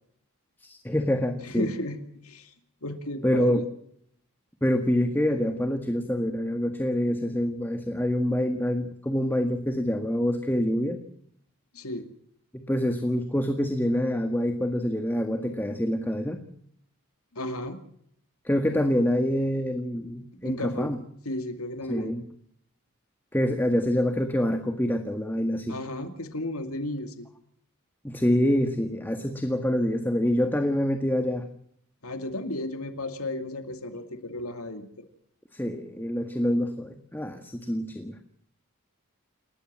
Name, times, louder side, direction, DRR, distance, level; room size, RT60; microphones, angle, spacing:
voice 1, 0.6-1.7 3.2-3.6 4.6-11.0 12.5-16.4 18.5-21.0 21.9-22.2 23.3-25.8 28.0-31.4 35.5-38.1, equal, 10° left, 6 dB, 1.7 m, -26 dB
voice 2, 1.4-2.5 2.8-3.7 11.7-12.1 17.3-17.8 20.4-20.9 21.2-22.1 25.7-27.3 32.0-34.9, left 1 dB, 85° left, 7 dB, 2.5 m, -34 dB
28.5 x 14.0 x 7.6 m, 0.67 s
head